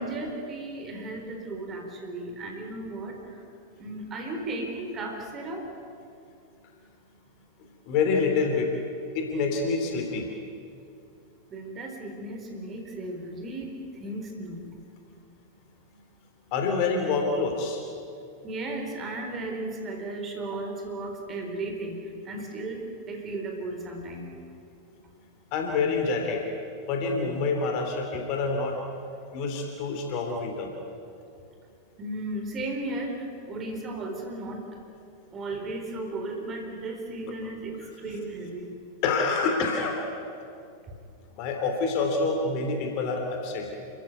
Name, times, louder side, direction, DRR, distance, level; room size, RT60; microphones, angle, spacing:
voice 1, 0.0-3.4 3.8-5.6 11.5-14.7 18.4-24.3 32.0-34.6 35.3-38.7, right 2 dB, 25° right, 3 dB, 4.2 m, -35 dB
voice 2, 7.9-8.7 9.1-10.3 16.5-17.8 25.5-26.4 26.9-28.8 29.3-30.7 39.0-40.0 41.4-43.7, left 4 dB, 45° left, 3 dB, 3.2 m, -27 dB
29.5 x 14.5 x 9.4 m, 2.5 s
figure-of-eight pair, 90°, 0 cm